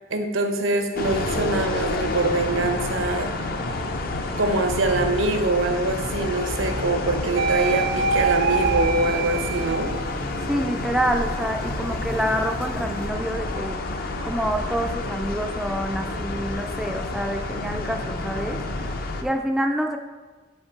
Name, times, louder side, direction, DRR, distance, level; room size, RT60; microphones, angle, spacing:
voice 1, 0.1-3.8 4.4-9.9, right 2 dB, 80° right, 5 dB, 0.9 m, -24 dB
sound 1, 1.0-19.2, left 2 dB, 50° left, 0.6 m, -29 dB
sound 2, 7.4-10.2 10.7-13.1, right 5 dB, 60° right, 0.5 m, -26 dB
voice 2, 10.5-13.8 14.2-18.6 19.2-20.0, equal, ahead, 4 dB, 0.4 m, -27 dB
5.7 x 5.2 x 5.7 m, 1.3 s
head